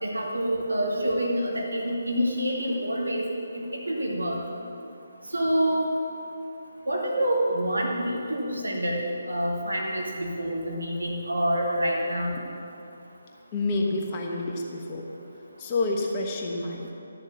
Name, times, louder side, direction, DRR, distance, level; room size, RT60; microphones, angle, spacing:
voice 1, 0.0-3.2 3.5-4.4 5.3-5.9 6.9-9.0 9.3-12.3, equal, 70° right, -2 dB, 2.4 m, -27 dB
voice 2, 13.5-15.0 15.6-16.9, left 2 dB, 25° left, 0 dB, 1.3 m, -28 dB
12.0 x 7.3 x 7.2 m, 2.7 s
figure-of-eight pair, 145°, 0 cm